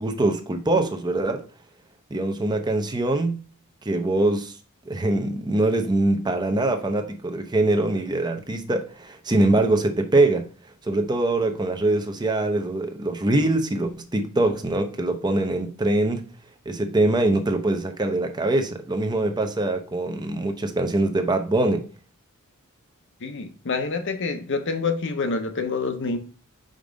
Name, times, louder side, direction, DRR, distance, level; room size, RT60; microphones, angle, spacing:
voice 1, 0.0-1.4 2.1-3.4 3.8-4.5 4.9-10.5 10.8-16.2 16.7-21.8, right 2 dB, 20° right, 0.7 m, -23 dB
voice 2, 23.2-26.2, left 4 dB, 60° left, 0.9 m, -27 dB
5.3 x 3.8 x 5.1 m
head